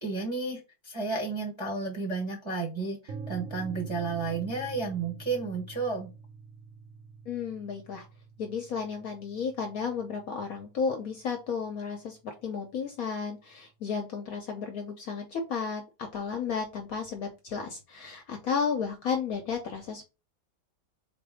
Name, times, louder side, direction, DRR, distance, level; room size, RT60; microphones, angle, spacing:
voice 1, 0.0-6.1, right 4 dB, 25° right, -2 dB, 0.7 m, -32 dB
sound 1, 3.1-11.0, right 5 dB, 60° right, 0.9 m, -45 dB
voice 2, 7.3-8.0 8.4-15.8 16.1-20.0, left 6 dB, 60° left, 4 dB, 1.0 m, -33 dB
4.0 x 2.6 x 4.8 m, 0.29 s
omnidirectional pair, 2.0 m